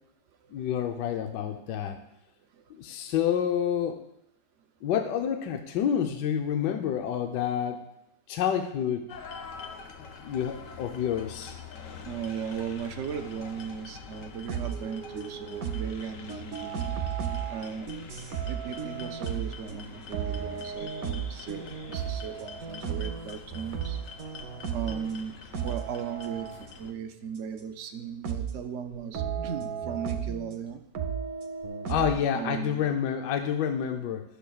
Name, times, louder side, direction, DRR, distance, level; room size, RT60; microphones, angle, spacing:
voice 1, 0.5-2.0 2.7-4.0 4.8-7.9 8.3-9.1 10.2-11.6 31.9-34.2, left 9 dB, 80° left, 5 dB, 1.2 m, -28 dB
sound 1, 9.1-26.9, left 5 dB, 60° left, 0.9 m, -45 dB
voice 2, 12.0-16.8 17.5-17.9 18.5-24.0 24.3-24.4 24.7-25.4 25.6-26.5 26.8-30.8 32.3-32.9, right 7 dB, 75° right, 6 dB, 0.6 m, -37 dB
sound 2, 14.5-16.0 16.3-25.2 25.5-26.6 27.6-27.7 28.2-28.6 28.9-30.6 31.0-32.3, right 7 dB, 60° right, 1.1 m, -34 dB
11.5 x 7.0 x 2.3 m, 0.81 s
omnidirectional pair, 1.9 m